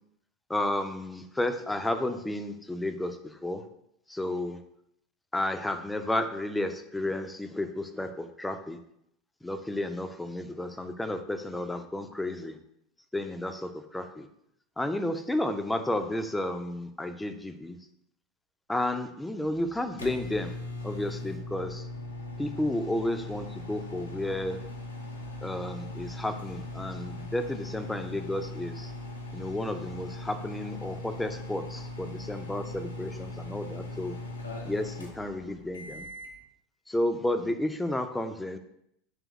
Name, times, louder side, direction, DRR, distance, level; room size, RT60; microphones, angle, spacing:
voice 1, 0.5-3.6 4.1-4.6 5.3-8.8 9.4-12.6 13.1-14.3 14.8-17.8 18.7-21.9 22.4-24.6 25.4-28.9 29.3-34.2 34.6-36.1 36.9-38.6, left 1 dB, 10° left, 8 dB, 0.4 m, -32 dB
sound 1, 19.4-36.4, left 2 dB, 85° left, 0.5 m, -40 dB
3.4 x 3.3 x 3.0 m, 0.75 s
figure-of-eight pair, 75°, 0 cm